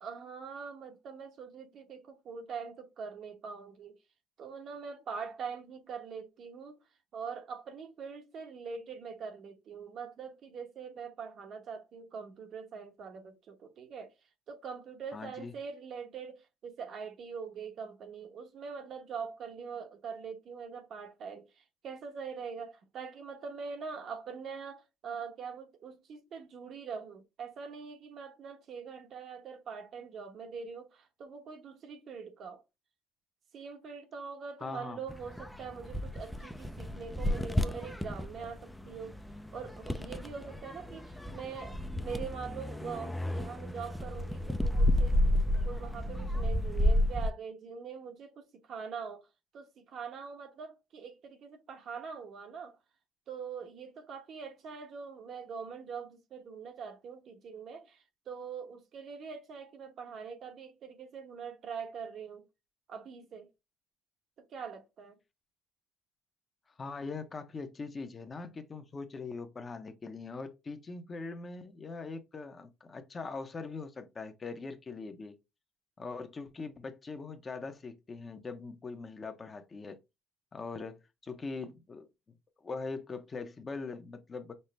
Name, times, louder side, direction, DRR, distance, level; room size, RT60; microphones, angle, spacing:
voice 1, 0.0-4.0 4.4-6.8 7.1-14.1 14.5-32.6 33.5-39.1 39.5-45.3 45.6-49.3 49.5-52.8 53.3-62.4 62.9-63.5 64.4-65.2, right 6 dB, 60° right, 1.0 m, -43 dB
voice 2, 15.1-15.5 34.6-35.0 66.8-75.4 76.0-80.0 80.5-82.1 82.6-84.6, left 4 dB, 30° left, 0.7 m, -41 dB
sound 1, 35.1-47.3, left 1 dB, 5° left, 0.4 m, -32 dB
5.4 x 2.0 x 3.2 m
cardioid pair, 100°, 0 cm